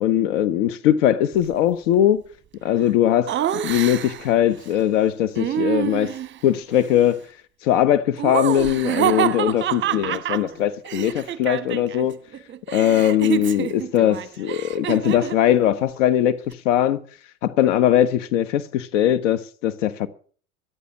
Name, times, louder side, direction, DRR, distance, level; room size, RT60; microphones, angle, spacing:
voice 1, 0.0-2.2 2.6-3.4 3.6-6.1 6.4-7.2 7.6-12.2 12.7-17.0 17.4-20.1, left 11 dB, 60° left, 1.2 m, -20 dB
Laughter, 3.3-4.3 5.3-6.4 8.2-12.1 12.3-15.4, right 10 dB, 25° right, 1.0 m, -26 dB
13.5 x 11.5 x 7.1 m
figure-of-eight pair, 85°, 42 cm